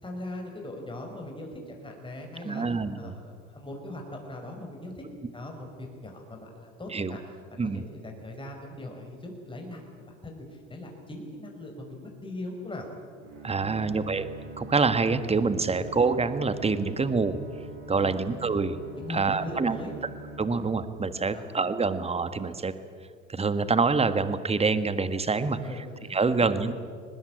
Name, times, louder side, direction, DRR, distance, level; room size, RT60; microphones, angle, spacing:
voice 1, 0.0-2.6 3.0-5.0 5.3-7.2 7.5-12.9 13.5-13.8 17.9-18.3 18.9-19.9 21.2-21.5 25.6-26.4 26.6-26.7, left 1 dB, 15° left, 2 dB, 5.3 m, -40 dB
voice 2, 2.4-3.2 6.9-7.2 7.6-7.9 13.4-14.3 14.6-17.4 17.9-18.8 19.1-19.8 20.4-22.7 23.3-25.6 26.1-26.7, right 4 dB, 15° right, 12 dB, 1.6 m, -26 dB
Bowed string instrument, 13.2-21.4, right 3 dB, 55° right, 7.2 m, -44 dB
23.0 x 20.0 x 8.8 m, 2.2 s
hypercardioid pair, 75°, 37 cm